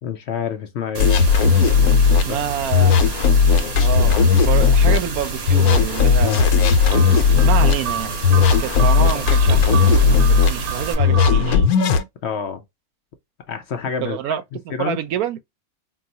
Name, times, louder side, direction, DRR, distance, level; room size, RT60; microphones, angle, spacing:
voice 1, 0.0-1.3 2.3-2.4 12.2-12.6 13.5-14.3 14.7-15.0, left 7 dB, 60° left, 0.8 m, -28 dB
sound 1, 0.9-10.9, right 2 dB, 50° right, 1.1 m, -30 dB
sound 2, 1.0-2.2 2.7-5.0 5.5-7.7 8.2-10.5 11.0-12.0, left 5 dB, 90° left, 1.1 m, -15 dB
voice 2, 2.1-2.9 3.8-6.5 7.4-11.6 14.0-14.4 14.8-15.4, right 9 dB, 90° right, 1.1 m, -27 dB
sound 3, 6.9-11.7, right 7 dB, 65° right, 0.7 m, -28 dB
4.5 x 2.0 x 2.7 m
omnidirectional pair, 1.5 m